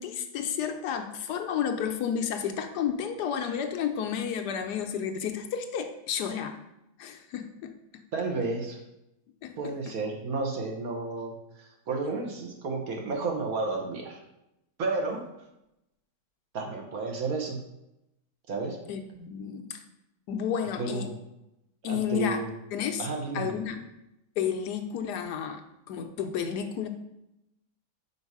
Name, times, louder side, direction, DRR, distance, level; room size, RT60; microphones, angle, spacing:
voice 1, 0.0-6.6 7.0-8.0 9.4-9.5 18.9-19.8 20.3-21.1 21.8-22.4 22.7-23.1 23.3-23.9 24.4-26.9, left 8 dB, 80° left, 6 dB, 1.2 m, -31 dB
voice 2, 8.1-8.8 9.6-14.2 14.8-15.2 16.5-17.6 18.5-18.8 20.8-21.2 21.9-22.5 23.0-23.6, right 3 dB, 60° right, 2 dB, 1.4 m, -32 dB
5.4 x 4.5 x 4.7 m, 0.87 s
omnidirectional pair, 1.8 m